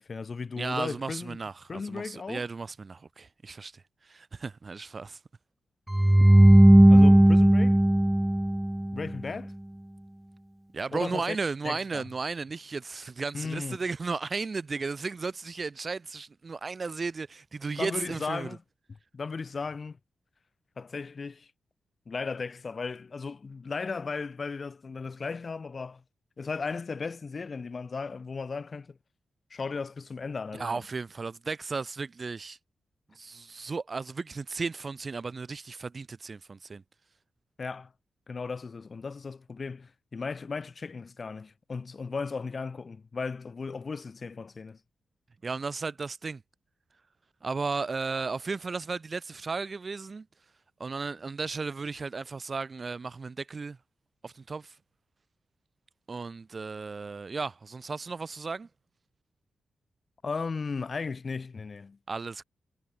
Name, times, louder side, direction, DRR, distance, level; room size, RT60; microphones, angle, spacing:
voice 1, 0.0-1.4 1.7-2.4 6.9-7.8 8.9-9.5 10.9-11.4 11.6-12.0 13.3-13.8 17.8-18.6 19.1-20.0 20.8-21.5 22.1-26.0 26.4-29.0 29.5-30.8 37.6-37.9 38.3-44.8 60.2-62.0, left 4 dB, 40° left, 2.5 m, -36 dB
voice 2, 0.6-5.2 10.7-18.6 30.6-32.6 33.1-36.8 45.4-46.4 47.4-50.2 50.8-53.8 54.2-54.7 56.1-58.7 62.1-62.4, right 4 dB, 35° right, 1.6 m, -35 dB
sound 1, 5.9-9.1, right 1 dB, 5° right, 0.6 m, -17 dB
wide cardioid pair, 130°, 0 cm